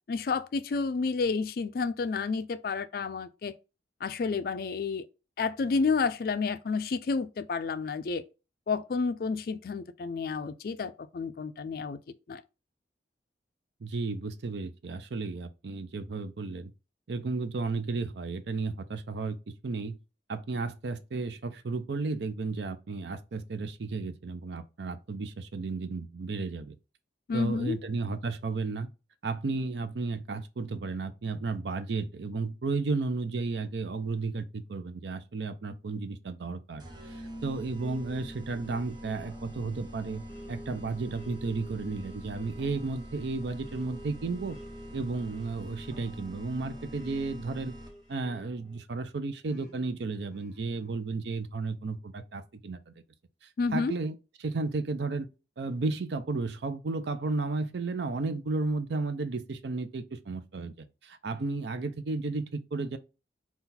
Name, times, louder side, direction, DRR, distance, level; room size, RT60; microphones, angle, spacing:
voice 1, 0.1-3.5 4.0-5.1 5.4-8.2 8.7-12.0 12.3-12.4 27.3-27.8 53.6-53.9, left 4 dB, 55° left, 0.3 m, -30 dB
voice 2, 13.8-16.7 17.1-20.0 20.3-26.7 27.3-28.9 29.2-44.6 44.9-47.7 48.1-52.9 53.4-55.3 55.6-63.0, right 3 dB, 70° right, 0.5 m, -33 dB
sound 1, 36.8-48.2, equal, 25° right, 0.6 m, -45 dB
sound 2, 37.8-48.8 49.5-51.0, right 1 dB, 5° left, 1.4 m, -52 dB
4.1 x 2.4 x 3.8 m
head